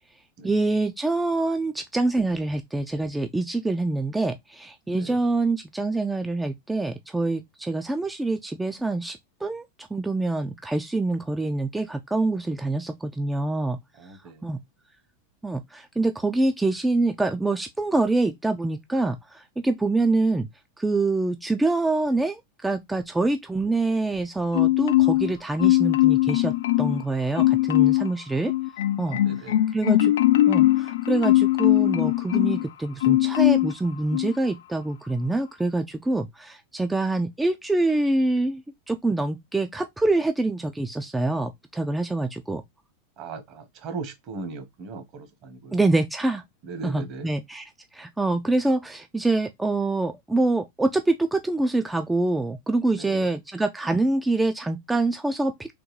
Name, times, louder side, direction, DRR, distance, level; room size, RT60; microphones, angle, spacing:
voice 1, 0.4-13.8 14.4-14.6 15.4-20.5 20.8-28.5 29.0-29.2 29.7-30.1 30.4-42.6 45.7-46.4 46.8-47.6 47.9-55.7, right 2 dB, 5° right, 0.3 m, -25 dB
voice 2, 14.0-14.6 29.0-29.6 43.2-45.8 46.7-47.3 52.9-53.3, right 3 dB, 45° right, 1.0 m, -38 dB
Marimba xylophone, 24.5-25.3 25.6-27.0 27.4-28.1 28.5-32.6 33.0-33.7 34.1-34.3, left 16 dB, 80° left, 0.3 m, -20 dB
3.6 x 2.2 x 3.1 m
hypercardioid pair, 120°, 0 cm